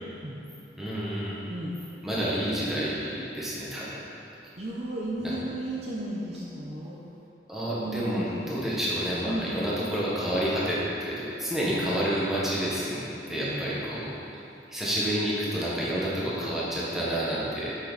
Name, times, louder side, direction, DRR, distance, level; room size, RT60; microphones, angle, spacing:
voice 1, 0.8-1.4 2.0-4.0 5.2-5.3 7.5-13.0 13.3-14.1 14.7-17.7, equal, ahead, -8 dB, 1.4 m, -29 dB
voice 2, 4.6-7.0 7.8-8.6 9.3-9.5 11.7-11.8 13.4-13.8, right 1 dB, 35° right, -6 dB, 0.7 m, -34 dB
7.7 x 6.2 x 4.1 m, 2.8 s
head